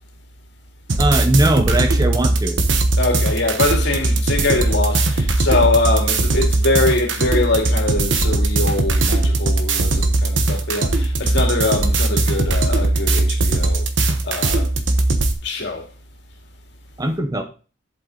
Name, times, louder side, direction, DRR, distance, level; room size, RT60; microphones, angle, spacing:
sound 1, 0.9-15.3, right 2 dB, 65° right, 1.2 m, -19 dB
voice 1, 1.0-2.6 17.0-17.4, right 1 dB, 20° right, 0.9 m, -19 dB
voice 2, 3.0-13.9 14.2-14.7 15.4-15.8, left 2 dB, 60° left, 2.5 m, -22 dB
8.2 x 7.5 x 4.0 m
head